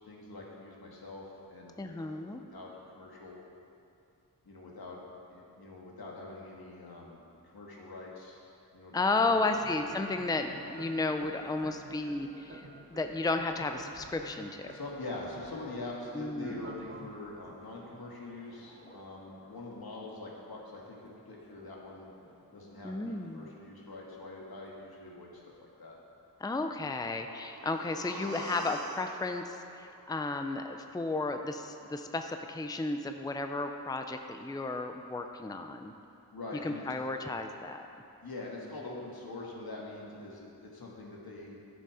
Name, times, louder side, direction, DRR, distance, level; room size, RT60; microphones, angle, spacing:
voice 1, 0.1-1.2 1.5-2.2 2.5-2.7 2.9-3.4 4.4-5.0 5.3-7.2 7.5-8.4 8.7-9.8 14.7-22.1 22.5-26.0 36.3-36.8 38.2-41.6, left 2 dB, 80° left, -3 dB, 1.8 m, -44 dB
voice 2, 1.8-2.4 8.9-14.7 16.1-16.7 22.8-23.5 26.4-35.9 36.6-37.8, left 3 dB, 10° left, 6 dB, 0.5 m, -33 dB
sound 1, 9.5-17.6, right 4 dB, 35° right, 0.6 m, -51 dB
Church bell, 9.8-24.8, left 2 dB, 30° left, 1.6 m, -57 dB
sound 2, 27.1-31.0 31.3-31.4, right 2 dB, 70° right, 0.9 m, -45 dB
11.5 x 6.8 x 4.9 m, 2.7 s
wide cardioid pair, 60°, 37 cm